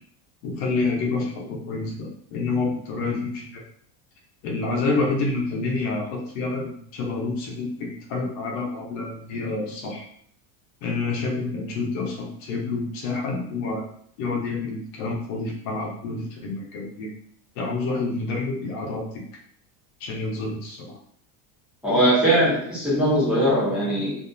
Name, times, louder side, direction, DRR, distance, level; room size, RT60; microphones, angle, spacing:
voice 1, 0.4-3.6 4.4-10.1 10.8-13.8 14.2-17.1 17.6-19.2 20.0-20.9, left 3 dB, 65° left, -1 dB, 0.8 m, -28 dB
voice 2, 21.8-24.1, equal, ahead, -10 dB, 0.6 m, -20 dB
2.7 x 2.6 x 2.2 m, 0.63 s
cardioid pair, 180°, 46 cm